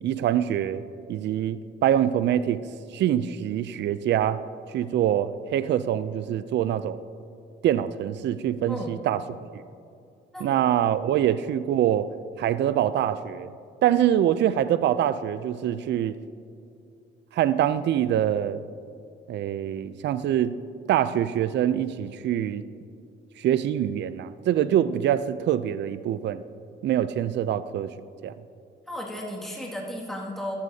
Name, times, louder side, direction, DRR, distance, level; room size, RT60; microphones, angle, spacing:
voice 1, 0.0-0.8 1.1-2.6 2.9-4.4 4.7-7.0 7.6-9.2 10.4-12.1 12.4-13.5 13.8-16.1 17.3-18.6 19.3-20.5 20.9-22.6 23.4-26.4 26.8-27.9 28.2-28.3, right 10 dB, 60° right, 14 dB, 0.4 m, -24 dB
voice 2, 28.9-30.5, left 1 dB, ahead, -3 dB, 2.1 m, -34 dB
14.0 x 13.0 x 2.8 m, 2.5 s
cardioid pair, 90°, 20 cm